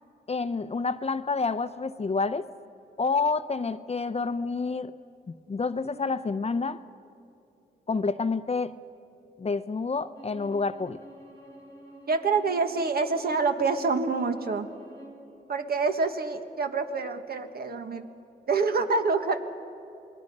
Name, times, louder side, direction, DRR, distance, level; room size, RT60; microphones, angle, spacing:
voice 1, 0.3-2.5 3.0-4.9 5.5-6.8 7.9-8.7 9.4-11.0, left 4 dB, 35° left, 13 dB, 0.7 m, -28 dB
Bowed string instrument, 10.1-15.2, right 1 dB, 90° right, 6.6 m, -49 dB
voice 2, 12.1-14.7 15.5-18.1 18.5-19.4, right 4 dB, 60° right, 7 dB, 1.4 m, -26 dB
27.5 x 20.5 x 5.4 m, 2.6 s
cardioid pair, 65°, 18 cm